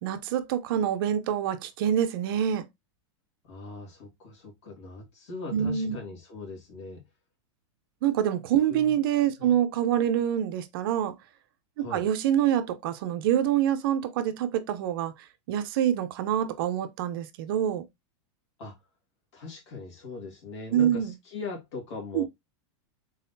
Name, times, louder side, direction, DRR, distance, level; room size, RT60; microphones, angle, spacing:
voice 1, 0.0-2.6 5.5-6.0 8.0-11.1 11.8-15.1 15.5-17.9 20.7-21.1 22.1-22.2, right 10 dB, 50° right, 0.6 m, -26 dB
voice 2, 3.4-7.0 8.7-8.9 9.4-9.6 11.8-12.0 18.6-18.8 19.3-22.2, left 3 dB, 65° left, 2.3 m, -40 dB
3.9 x 3.8 x 2.7 m
supercardioid pair, 170°, 16 cm